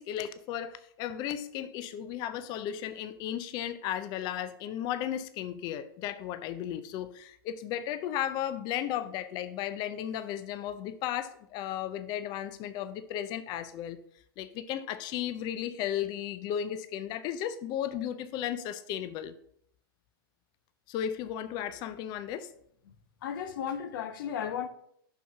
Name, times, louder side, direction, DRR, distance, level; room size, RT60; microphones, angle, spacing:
voice 1, 0.0-14.0 14.4-19.3 20.9-22.5, left 10 dB, 35° left, 0.5 m, -35 dB
voice 2, 23.2-24.7, left 8 dB, 60° left, 0.8 m, -34 dB
5.7 x 5.7 x 5.8 m
hypercardioid pair, 130°, 12 cm